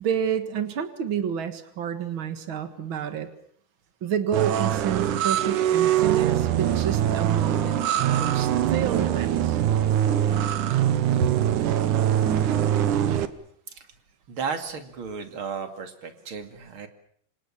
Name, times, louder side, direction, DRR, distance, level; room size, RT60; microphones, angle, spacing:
voice 1, 0.0-3.3 4.0-9.6 11.2-11.3, right 8 dB, 85° right, 9 dB, 1.1 m, -29 dB
sound 1, 4.3-13.3, right 10 dB, 65° right, 2.1 m, -23 dB
voice 2, 14.3-16.9, right 5 dB, 40° right, 7 dB, 2.3 m, -34 dB
27.5 x 26.5 x 7.3 m, 0.64 s
omnidirectional pair, 5.2 m